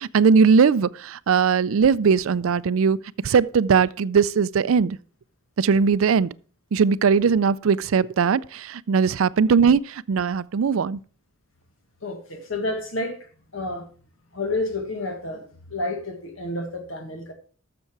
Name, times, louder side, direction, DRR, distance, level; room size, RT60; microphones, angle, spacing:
voice 1, 0.0-5.0 5.6-6.3 6.7-11.0, right 6 dB, 75° right, 0.4 m, -20 dB
voice 2, 12.0-13.2 13.5-13.9 14.3-17.3, left 2 dB, 75° left, 1.7 m, -30 dB
12.5 x 6.9 x 4.7 m
head